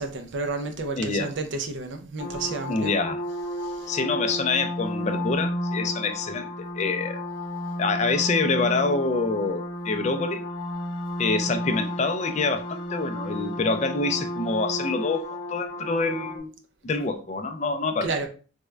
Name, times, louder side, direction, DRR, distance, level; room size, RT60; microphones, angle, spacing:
voice 1, 0.0-2.9 3.5-4.0 18.0-18.3, right 3 dB, 55° right, 0.4 m, -31 dB
voice 2, 1.0-1.3 2.7-3.2 3.9-7.2 7.8-10.4 11.2-16.5 16.8-18.1, left 3 dB, 35° left, 0.3 m, -26 dB
sound 1, 2.2-16.4, left 1 dB, 60° left, 0.7 m, -32 dB
3.5 x 2.1 x 3.1 m
head